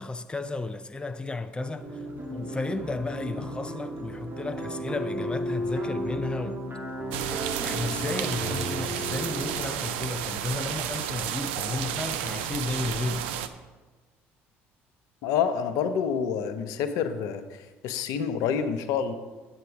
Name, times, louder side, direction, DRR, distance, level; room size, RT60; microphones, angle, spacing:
voice 1, 0.0-2.0 2.3-6.6 7.5-13.3, left 3 dB, 15° left, 0.6 m, -33 dB
sound 1, 1.8-9.6, equal, 35° right, 2.0 m, -34 dB
sound 2, 7.1-13.5, right 10 dB, 85° right, 0.5 m, -32 dB
sound 3, 8.4-10.2, equal, 55° right, 1.6 m, -41 dB
voice 2, 15.2-19.1, left 7 dB, 75° left, 0.8 m, -28 dB
9.0 x 7.9 x 4.7 m
hypercardioid pair, 65°, 6 cm